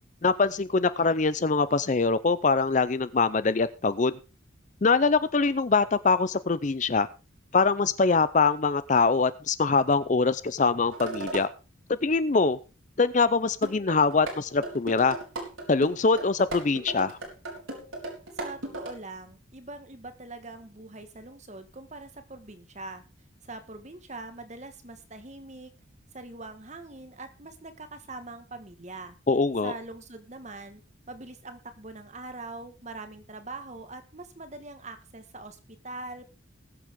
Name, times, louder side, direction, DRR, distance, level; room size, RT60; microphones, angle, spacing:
voice 1, 0.2-4.1 4.8-7.1 7.5-11.5 12.0-12.6 13.0-15.2 15.7-17.2 29.3-29.7, left 4 dB, 35° left, 15 dB, 0.5 m, -23 dB
sound 1, 10.9-11.5 13.6-14.4 14.6-18.9, right 2 dB, 85° right, 3.8 m, -36 dB
voice 2, 18.4-23.0 23.4-25.7 26.1-29.2 29.6-30.8 31.1-36.3, right 2 dB, 35° right, 9 dB, 1.5 m, -42 dB
20.0 x 7.4 x 3.7 m, 0.31 s
head